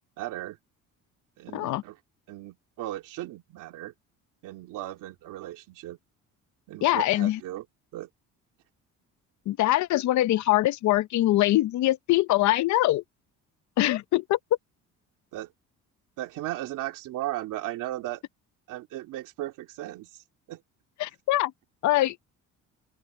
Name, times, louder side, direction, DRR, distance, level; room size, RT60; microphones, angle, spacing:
voice 1, 0.2-0.6 1.4-2.0 2.3-3.9 4.4-6.0 6.7-7.6 7.9-8.1 15.3-15.5 16.2-18.2 18.7-20.2 20.5-20.6, right 15 dB, 85° right, 2.6 m, -36 dB
voice 2, 1.5-1.8 6.8-7.4 9.5-13.0 13.8-14.4 21.0-21.5 21.8-22.3, left 16 dB, 65° left, 0.8 m, -23 dB
open air
cardioid pair, 135°, 31 cm